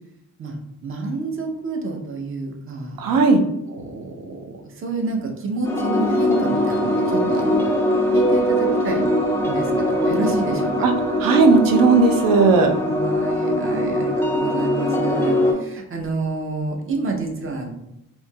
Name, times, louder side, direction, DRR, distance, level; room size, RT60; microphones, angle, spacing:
voice 1, 0.8-3.0 3.7-7.7 8.1-9.1 9.5-10.7 12.9-17.7, right 3 dB, 40° right, 2 dB, 0.7 m, -28 dB
voice 2, 3.0-3.4 10.8-10.9 11.2-12.7, right 4 dB, 80° right, 5 dB, 0.6 m, -15 dB
sound 1, 5.6-15.5, equal, 5° left, 0.6 m, -21 dB
4.4 x 2.7 x 2.3 m, 0.84 s
wide cardioid pair, 135°, 33 cm